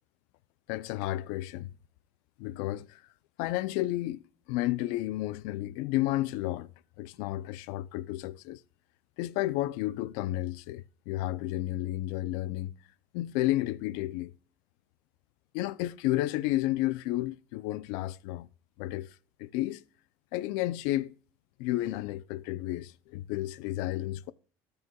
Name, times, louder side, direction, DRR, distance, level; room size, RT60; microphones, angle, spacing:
voice 1, 0.7-1.7 2.4-3.0 3.4-4.2 4.5-6.7 7.0-8.6 9.2-12.7 13.1-14.3 15.5-18.5 18.8-19.8 20.3-21.1 21.6-24.3, left 16 dB, 60° left, 0.4 m, -32 dB
17.0 x 6.8 x 2.3 m
cardioid pair, 180°, 8 cm